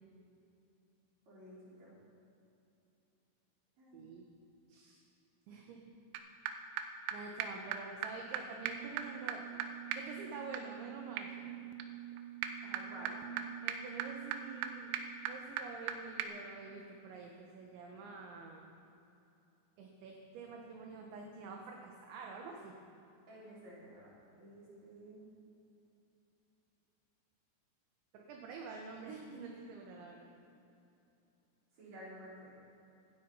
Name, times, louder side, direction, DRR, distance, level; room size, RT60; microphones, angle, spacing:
voice 1, 1.3-1.9 3.8-4.1 12.6-13.4 23.3-25.3 31.8-32.5, right 1 dB, 35° right, -7 dB, 5.3 m, -52 dB
voice 2, 3.9-4.3 4.7-5.0 5.5-5.8 7.1-9.6 9.9-11.6 13.6-14.9 15.3-18.6 19.8-22.7 28.1-30.3, right 4 dB, 70° right, 1 dB, 3.4 m, -48 dB
sound 1, 6.2-6.3 6.5-6.6 6.8-6.9 7.1-7.2 7.4-7.5 7.7-7.8 8.0-8.1 8.3-8.4 8.7-15.9 16.2-16.3, right 8 dB, 90° right, 3.5 m, -41 dB
17.5 x 12.0 x 5.7 m, 2.9 s
omnidirectional pair, 5.8 m